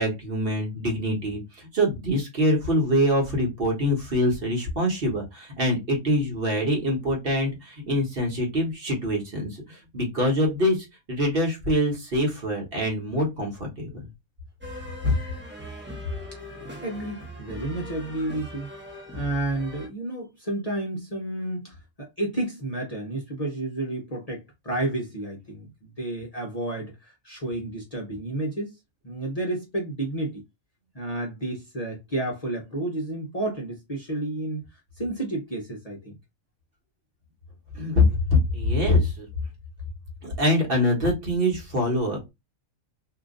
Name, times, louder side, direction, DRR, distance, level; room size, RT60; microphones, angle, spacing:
voice 1, 0.0-14.1 15.0-15.2 37.7-39.3 40.2-42.3, left 1 dB, 45° right, 1.3 m, -24 dB
sound 1, 14.6-19.9, left 1 dB, 10° right, 0.8 m, -40 dB
voice 2, 16.8-18.7 19.1-28.8 29.0-30.4 30.9-36.2, right 2 dB, 35° left, 0.8 m, -31 dB
2.9 x 2.5 x 3.7 m
omnidirectional pair, 1.4 m